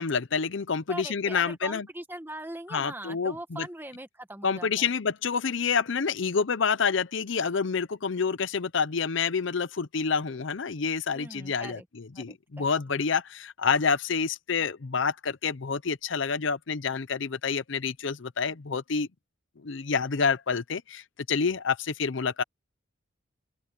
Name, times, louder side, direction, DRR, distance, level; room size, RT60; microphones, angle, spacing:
voice 1, 0.0-1.9 2.7-3.7 4.4-19.1 19.6-22.4, left 5 dB, 65° left, 0.6 m, -28 dB
voice 2, 0.9-4.9 11.1-11.8 12.1-12.7, right 1 dB, 10° right, 1.3 m, -41 dB
open air
head